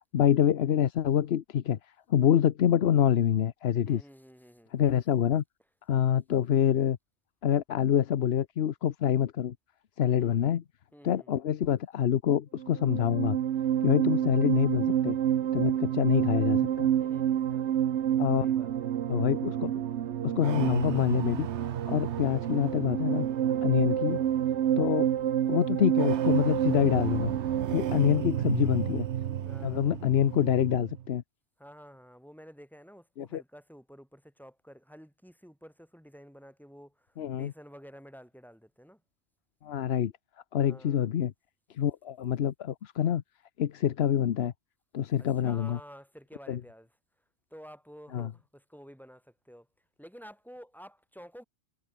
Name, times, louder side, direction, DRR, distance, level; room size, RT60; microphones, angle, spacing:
voice 1, 0.1-4.0 4.7-5.4 5.9-7.0 7.4-9.5 10.0-10.6 11.0-13.4 13.8-15.2 15.5-16.9 18.2-18.5 19.1-19.7 20.2-21.5 21.9-23.3 23.6-24.2 24.8-25.1 25.5-27.3 27.7-29.1 29.6-31.2 33.2-33.4 37.2-37.5 39.6-40.1 40.5-41.3 41.7-43.2 43.6-44.5 44.9-45.8 46.5-46.6 48.1-48.3, left 9 dB, 55° left, 0.9 m, -26 dB
voice 2, 3.8-4.7 10.0-10.5 10.9-11.3 13.8-14.0 16.9-17.8 18.4-18.9 23.7-23.9 24.5-24.8 28.5-28.6 29.5-30.0 31.6-39.0 40.6-41.1 45.2-46.9 47.5-49.7 50.0-51.4, equal, ahead, 2.7 m, -51 dB
sound 1, 12.6-31.0, right 10 dB, 65° right, 1.0 m, -29 dB
omnidirectional pair, 1.3 m